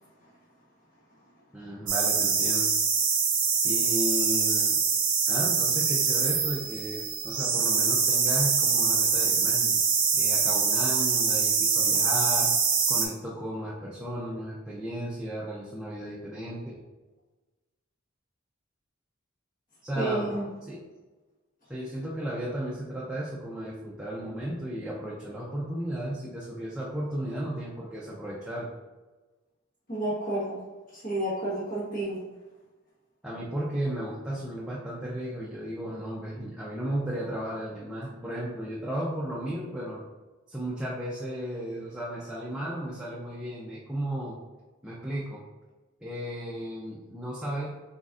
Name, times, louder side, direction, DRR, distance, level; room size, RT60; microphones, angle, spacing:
voice 1, 1.5-2.7 3.6-4.8 5.3-9.8 10.1-12.5 12.9-16.8 19.8-20.8 21.7-28.7 33.2-40.0 40.5-44.4 44.8-45.4 46.0-47.7, right 1 dB, 5° right, -7 dB, 0.5 m, -34 dB
sound 1, 1.9-13.1, right 5 dB, 40° right, 0.7 m, -24 dB
voice 2, 20.0-20.4 29.9-30.6 31.0-32.2, right 1 dB, 40° left, -9 dB, 1.3 m, -30 dB
4.2 x 3.8 x 2.5 m, 1.2 s
head